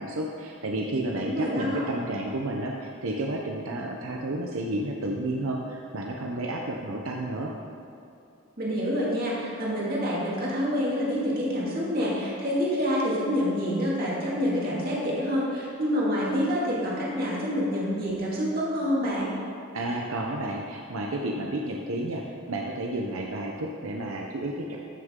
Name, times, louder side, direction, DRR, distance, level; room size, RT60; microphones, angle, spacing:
voice 1, 0.0-7.5 19.7-24.8, right 1 dB, 85° right, 0 dB, 0.8 m, -31 dB
voice 2, 1.1-1.8 8.6-19.3, equal, 45° right, -6 dB, 2.4 m, -27 dB
14.5 x 6.5 x 3.8 m, 2.6 s
head